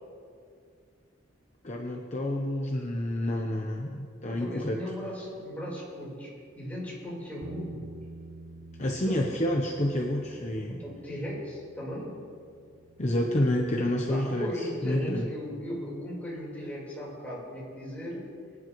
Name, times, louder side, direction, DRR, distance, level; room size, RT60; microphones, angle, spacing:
voice 1, 1.6-4.8 8.8-10.8 13.0-15.3, left 1 dB, 35° left, 0 dB, 0.9 m, -29 dB
voice 2, 4.3-6.3 6.6-7.9 9.1-9.3 10.7-12.1 14.1-18.3, equal, 10° left, -6 dB, 4.2 m, -37 dB
Bass guitar, 7.4-13.7, right 2 dB, 35° right, 0.6 m, -48 dB
24.5 x 10.5 x 3.2 m, 2.3 s
head